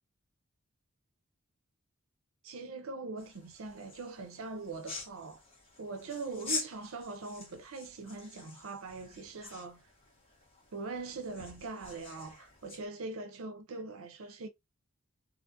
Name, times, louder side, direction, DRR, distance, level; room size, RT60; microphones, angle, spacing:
voice 1, 2.4-5.4 5.8-9.9 10.7-14.5, right 3 dB, 70° right, 0.5 m, -42 dB
sound 1, 3.2-12.9, left 4 dB, 25° left, 1.2 m, -45 dB
2.8 x 2.4 x 2.5 m
head